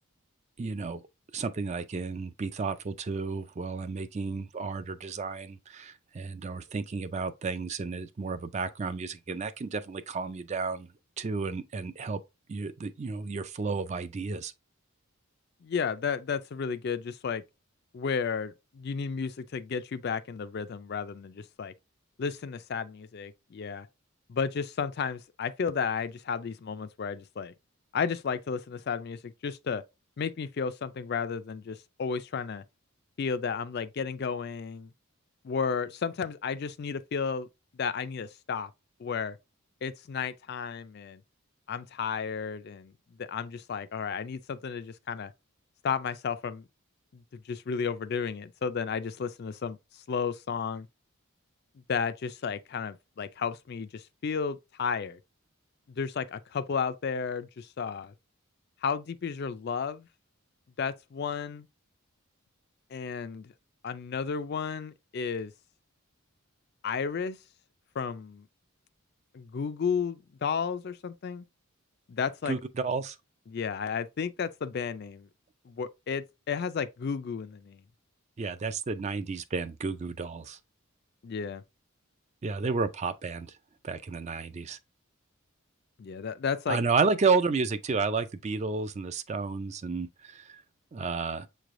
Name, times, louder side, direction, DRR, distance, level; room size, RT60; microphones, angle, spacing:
voice 1, 0.6-1.0 1.3-10.9 11.2-12.2 12.5-14.5 72.5-73.2 78.4-80.6 82.4-83.6 83.8-84.8 86.7-90.6 90.9-91.5, right 4 dB, 30° right, 0.3 m, -31 dB
voice 2, 15.6-17.4 17.9-21.7 22.2-23.9 24.3-27.5 27.9-29.8 30.2-32.6 33.2-34.9 35.4-37.5 37.7-38.7 39.0-39.4 39.8-41.2 41.7-42.9 43.2-45.3 45.8-46.7 47.1-49.8 50.1-50.9 51.9-55.2 56.0-58.1 58.8-60.1 60.8-61.7 62.9-63.5 63.8-65.5 66.8-67.4 68.0-68.4 69.3-71.5 72.1-72.6 73.5-75.3 75.7-77.8 81.2-81.6 86.0-86.8, left 6 dB, 45° left, 0.3 m, -33 dB
6.6 x 3.2 x 2.5 m
head